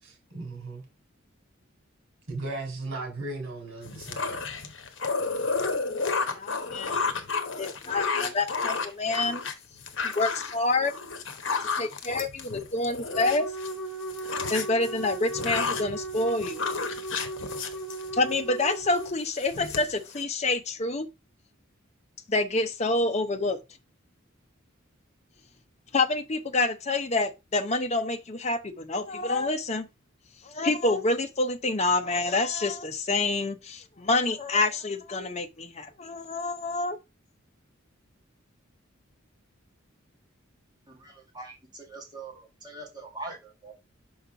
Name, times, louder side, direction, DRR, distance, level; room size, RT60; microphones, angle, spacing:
voice 1, 0.0-0.8 2.3-4.4 5.2-5.5, right 2 dB, 70° right, 3.6 m, -37 dB
sound 1, 3.8-13.7 14.0-18.4 18.8-19.1 19.4-20.2, left 4 dB, 65° left, 1.0 m, -32 dB
voice 2, 6.4-7.0 7.6-9.4 10.0-10.9 11.8-13.5 14.5-16.6 18.1-21.1 22.3-23.6 25.9-29.9 30.4-37.0, left 2 dB, 30° left, 0.7 m, -27 dB
Wind instrument woodwind instrument, 13.1-19.2, right 2 dB, ahead, 0.8 m, -37 dB
voice 3, 40.9-43.7, right 2 dB, 20° right, 1.9 m, -42 dB
5.6 x 5.6 x 3.8 m
head